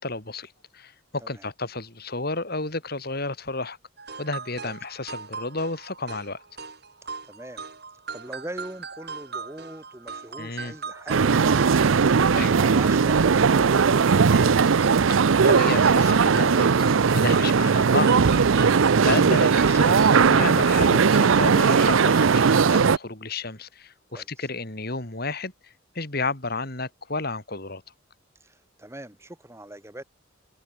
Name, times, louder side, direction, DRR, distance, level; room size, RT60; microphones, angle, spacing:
voice 1, 0.0-3.8 4.2-6.4 10.4-10.7 12.3-12.6 15.1-18.7 19.0-27.8, left 3 dB, 50° left, 3.8 m, -32 dB
sound 1, 4.0-13.8 14.1-20.8 21.1-21.3 21.6-21.7, right 5 dB, 55° right, 6.1 m, -39 dB
voice 2, 7.0-7.6 8.1-11.9 24.1-24.5 28.4-30.0, right 1 dB, 15° right, 2.1 m, -42 dB
sound 2, 11.1-23.0, right 5 dB, 80° right, 0.6 m, -19 dB
head